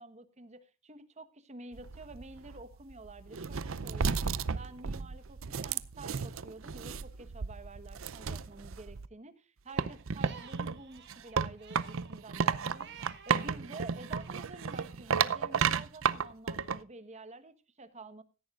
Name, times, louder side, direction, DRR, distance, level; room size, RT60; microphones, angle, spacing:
voice 1, 0.0-18.2, right 2 dB, 35° right, 12 dB, 1.3 m, -49 dB
sound 1, 1.7-9.1 9.8-16.8, right 6 dB, 80° right, 0.6 m, -33 dB
Crying sobbing, 9.7-13.6 13.9-15.0, right 6 dB, 60° right, 2.9 m, -53 dB
16.5 x 14.0 x 2.5 m, 0.31 s
head